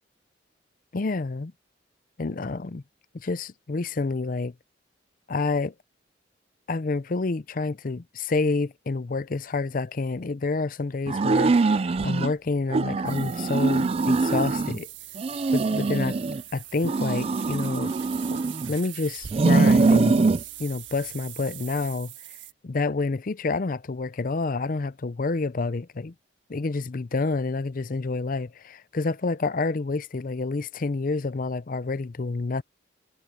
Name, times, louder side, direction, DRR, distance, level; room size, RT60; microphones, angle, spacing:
voice 1, 0.9-1.5 2.2-2.8 3.1-4.5 5.3-5.7 6.7-14.9 15.5-16.2 16.5-18.0 18.3-18.4 18.7-20.2 20.6-22.1 22.6-26.1 26.5-32.6, left 3 dB, 45° left, 0.5 m, -28 dB
sound 1, 11.1-12.3 12.7-14.8 15.2-16.4 16.8-18.8 19.2-20.4, right 3 dB, 30° right, 0.3 m, -23 dB
sound 2, 13.0-22.5, right 14 dB, 85° right, 1.6 m, -42 dB
head